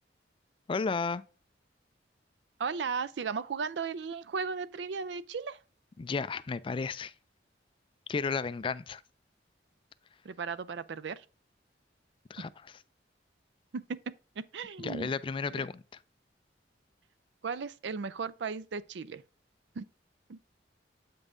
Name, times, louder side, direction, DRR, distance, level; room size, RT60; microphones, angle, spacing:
voice 1, 0.7-1.2 6.0-7.1 8.1-9.0 12.3-12.5 14.8-15.8, left 4 dB, 30° left, 0.3 m, -33 dB
voice 2, 2.6-5.6 10.2-11.2 13.7-15.1 15.5-15.7 17.4-19.2 19.8-19.9 20.3-20.4, right 5 dB, 70° right, 0.4 m, -36 dB
8.1 x 5.4 x 2.5 m
head